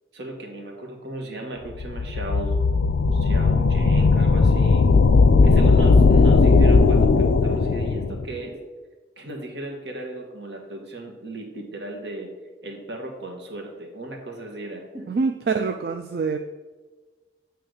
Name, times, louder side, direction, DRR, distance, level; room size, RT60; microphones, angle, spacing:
voice 1, 0.1-2.5 3.1-4.9 5.4-8.6 9.2-12.3 12.6-15.2, right 1 dB, 80° right, 2 dB, 1.4 m, -36 dB
sound 1, 1.7-8.2, left 4 dB, 90° left, 0.4 m, -17 dB
voice 2, 15.1-16.4, right 4 dB, 60° right, 7 dB, 0.3 m, -25 dB
7.8 x 3.4 x 6.4 m, 1.3 s
head